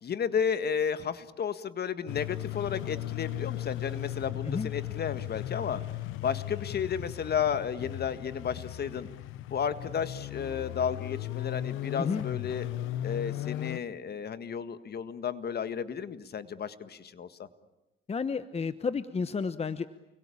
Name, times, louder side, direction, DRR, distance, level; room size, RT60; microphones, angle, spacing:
voice 1, 0.0-5.8 6.2-9.1 9.5-12.7 13.0-17.5, left 7 dB, 55° left, 12 dB, 1.8 m, -33 dB
sound 1, 2.1-13.8, left 14 dB, 90° left, 0.9 m, -36 dB
voice 2, 18.1-19.9, left 5 dB, 30° left, 13 dB, 1.1 m, -31 dB
29.5 x 22.5 x 8.7 m, 0.99 s
cardioid pair, 90°, 20 cm